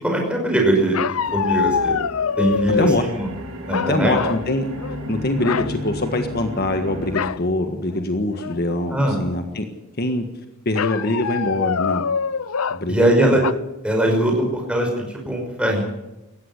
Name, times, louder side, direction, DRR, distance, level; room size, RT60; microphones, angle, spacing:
voice 1, 0.0-1.9 2.4-3.3 3.7-4.2 8.9-9.2 12.9-13.4 13.8-15.8, right 1 dB, 5° right, 1 dB, 5.5 m, -21 dB
sound 1, 0.9-3.1 3.7-4.5 4.8-5.0 5.4-5.7 7.1-7.4 7.9-8.0 8.4-8.8 10.8-12.8 13.4-13.5, left 6 dB, 85° left, 0.6 m, -24 dB
sound 2, 1.3-7.1, equal, 85° right, 4.1 m, -33 dB
voice 2, 3.9-4.7 5.1-9.6 10.0-10.2 10.6-12.0 12.7-13.4, left 1 dB, 45° left, 6 dB, 1.6 m, -23 dB
18.5 x 15.0 x 9.8 m, 0.97 s
head